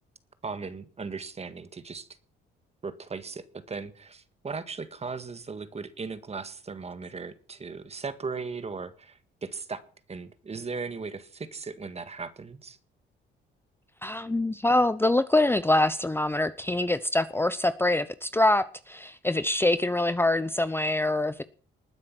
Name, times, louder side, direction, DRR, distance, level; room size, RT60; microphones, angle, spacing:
voice 1, 0.4-2.1 2.8-9.8 10.1-12.8, right 4 dB, 30° right, 1.7 m, -37 dB
voice 2, 14.0-21.4, left 2 dB, 10° left, 0.8 m, -25 dB
20.0 x 9.8 x 6.1 m
cardioid pair, 90°, 20 cm